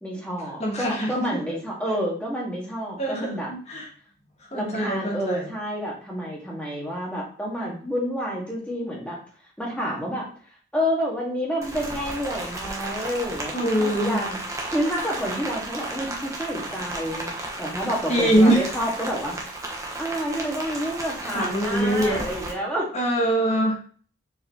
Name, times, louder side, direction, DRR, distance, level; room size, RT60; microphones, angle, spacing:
voice 1, 0.0-3.5 4.5-9.2 9.6-10.3 10.7-14.4 14.7-17.3 17.6-19.4 20.0-22.9, equal, 5° left, -4 dB, 2.0 m, -29 dB
voice 2, 0.6-1.1 3.0-3.9 4.5-5.5 13.5-14.2 18.1-18.6 21.2-22.3 22.9-23.8, right 1 dB, 30° left, -2 dB, 1.5 m, -23 dB
Rain, 11.6-22.5, right 2 dB, 15° right, 1.2 m, -34 dB
6.8 x 4.7 x 3.2 m, 0.43 s
head